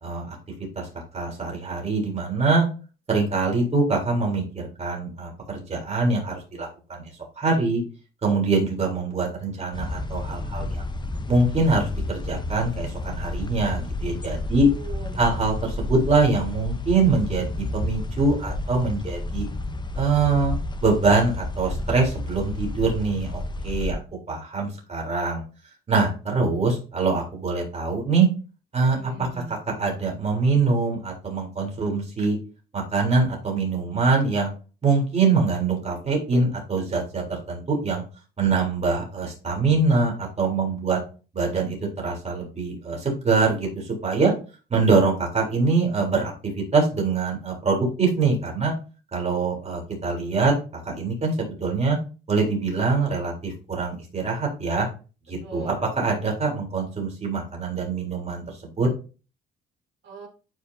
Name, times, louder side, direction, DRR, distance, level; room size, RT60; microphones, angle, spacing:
voice 1, 0.0-0.4 0.8-0.9 1.1-2.7 3.1-7.0 7.4-7.8 8.2-10.9 11.3-14.7 15.2-19.5 20.0-24.0 24.3-25.4 25.9-28.3 28.7-29.1 29.8-32.4 32.7-34.5 34.8-38.0 38.4-41.0 41.3-44.3 44.7-46.3 46.7-48.7 49.1-50.5 50.9-52.0 52.3-54.9 55.3-58.4 58.8-58.9, right 3 dB, 35° right, 0 dB, 3.7 m, -24 dB
sound 1, 9.7-23.9, left 2 dB, 20° left, 0.9 m, -31 dB
voice 2, 14.6-15.4 28.9-29.6 55.4-56.1 60.0-60.3, right 4 dB, 70° right, -2 dB, 3.4 m, -39 dB
11.5 x 5.0 x 2.8 m, 0.34 s
cardioid pair, 90°, 20 cm